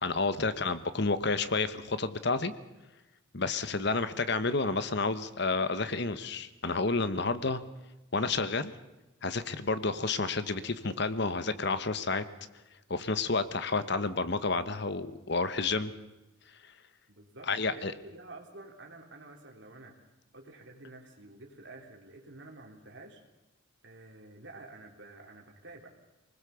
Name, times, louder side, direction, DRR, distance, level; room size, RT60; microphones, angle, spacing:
voice 1, 0.0-2.5 3.3-7.6 8.1-8.7 9.2-12.2 12.9-15.9 17.5-17.9, left 3 dB, 55° left, 13 dB, 1.1 m, -30 dB
voice 2, 17.1-20.1 20.3-23.2 23.8-25.9, right 2 dB, 60° right, 1 dB, 3.4 m, -50 dB
24.5 x 20.0 x 7.1 m, 1.0 s
head